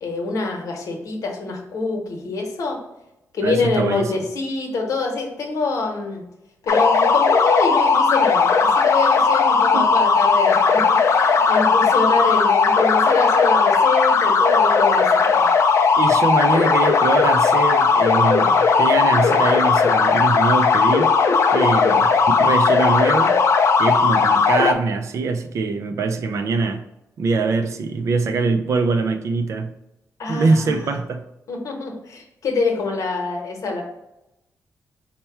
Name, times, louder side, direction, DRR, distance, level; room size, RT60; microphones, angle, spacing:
voice 1, 0.0-2.8 3.3-6.2 6.6-15.5 21.6-22.0 30.2-30.9 31.5-33.8, left 3 dB, 75° left, 2 dB, 0.9 m, -25 dB
voice 2, 3.4-4.1 9.6-9.9 16.0-21.1 21.5-22.1 22.4-23.3 23.8-26.8 27.2-29.7 30.3-31.2, right 4 dB, 65° right, 7 dB, 0.4 m, -23 dB
sound 1, 6.7-24.7, left 5 dB, 55° left, 0.4 m, -17 dB
4.2 x 2.2 x 4.5 m, 0.89 s
wide cardioid pair, 145°, 6 cm